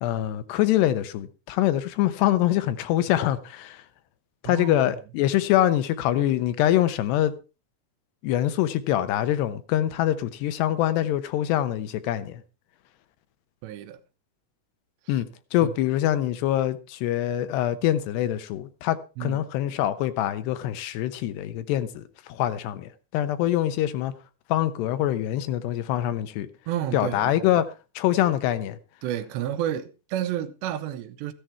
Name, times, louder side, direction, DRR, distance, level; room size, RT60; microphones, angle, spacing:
voice 1, 0.0-3.8 4.4-7.3 8.2-12.4 15.1-24.1 24.5-26.5 26.9-28.8, left 12 dB, 80° left, 3.0 m, -24 dB
voice 2, 4.4-4.9 13.6-14.0 15.1-15.2 15.6-15.7 19.2-19.4 26.7-27.6 29.0-31.3, right 11 dB, 90° right, 3.3 m, -31 dB
15.0 x 10.5 x 4.5 m
omnidirectional pair, 4.9 m